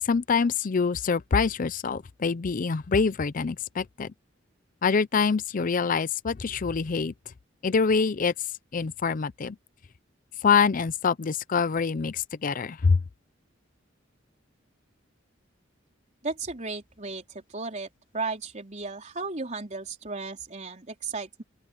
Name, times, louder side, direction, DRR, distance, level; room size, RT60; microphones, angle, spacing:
voice 1, 0.0-4.1 4.8-7.1 7.6-8.3 8.7-9.6 10.4-13.0, left 5 dB, 40° left, 0.5 m, -25 dB
voice 2, 16.2-17.9 18.1-21.4, right 3 dB, 35° right, 4.1 m, -35 dB
open air
head